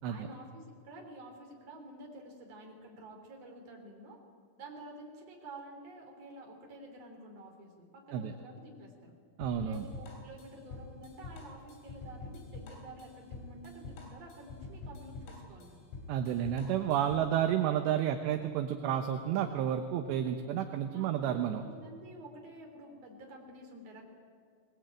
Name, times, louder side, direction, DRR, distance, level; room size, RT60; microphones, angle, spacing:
voice 1, 0.0-4.2 4.6-9.1 9.6-15.8 20.9-21.2 21.6-24.0, right 1 dB, 35° right, 1 dB, 3.8 m, -50 dB
sound 1, 9.4-17.3, left 3 dB, 80° left, 6.2 m, -46 dB
voice 2, 9.4-9.9 16.1-21.6, right 10 dB, 75° right, 6 dB, 2.7 m, -31 dB
20.5 x 20.5 x 8.9 m, 2.2 s
omnidirectional pair, 5.8 m